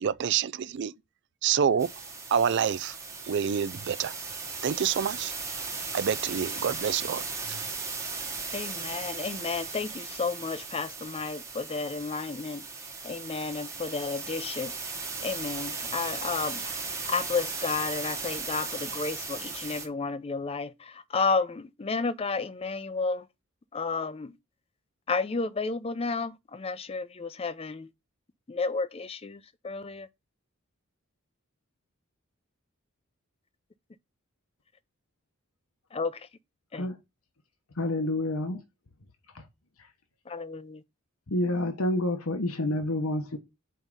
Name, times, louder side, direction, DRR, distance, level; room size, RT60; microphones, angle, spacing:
voice 1, 0.0-0.9 1.4-1.9 2.3-3.0 3.3-4.1 4.6-5.3 5.9-7.3, right 7 dB, 55° right, 0.4 m, -27 dB
sound 1, 1.8-19.9, right 4 dB, 15° right, 1.1 m, -37 dB
voice 2, 8.5-12.6 13.0-14.7 15.2-16.6 17.1-20.7 21.1-23.2 23.7-24.3 25.1-27.9 28.5-29.4 29.6-30.1 35.9-36.1 36.7-36.8 40.3-40.8, left 4 dB, 25° left, 0.5 m, -31 dB
voice 3, 37.8-38.6 39.3-39.4 41.3-43.4, left 1 dB, 85° left, 1.2 m, -28 dB
5.6 x 4.7 x 5.4 m
head